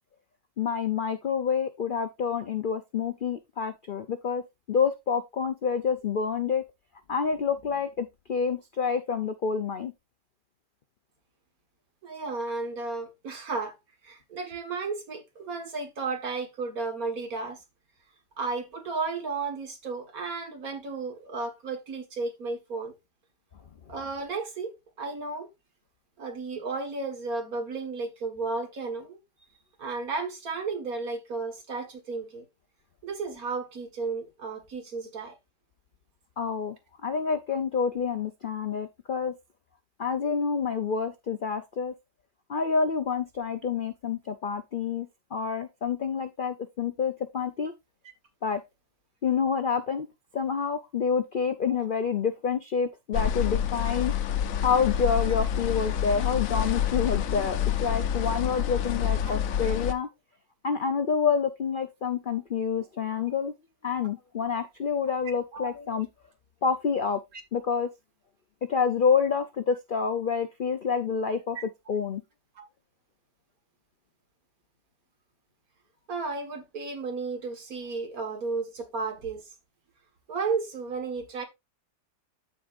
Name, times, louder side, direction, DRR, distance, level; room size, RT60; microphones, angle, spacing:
voice 1, 0.6-4.4 4.7-6.6 7.1-9.9 36.4-36.7 37.0-39.3 40.0-41.9 42.5-47.7 48.4-48.6 49.2-50.1 50.3-54.1 54.6-60.1 60.6-63.5 63.8-66.1 66.6-67.2 67.5-67.9 68.7-71.6 71.9-72.2, left 6 dB, 80° left, 0.4 m, -28 dB
voice 2, 12.0-13.8 14.0-17.6 18.4-22.9 23.9-24.7 25.0-25.5 26.2-29.2 29.8-32.4 33.0-35.4 51.7-51.8 59.3-59.4 65.5-65.7 67.3-67.4 71.6-71.7 72.6-72.7 76.1-79.4 80.3-81.4, right 4 dB, 60° right, 2.1 m, -33 dB
sound 1, 53.1-59.9, left 9 dB, 65° left, 1.0 m, -28 dB
14.0 x 4.7 x 2.5 m
omnidirectional pair, 1.8 m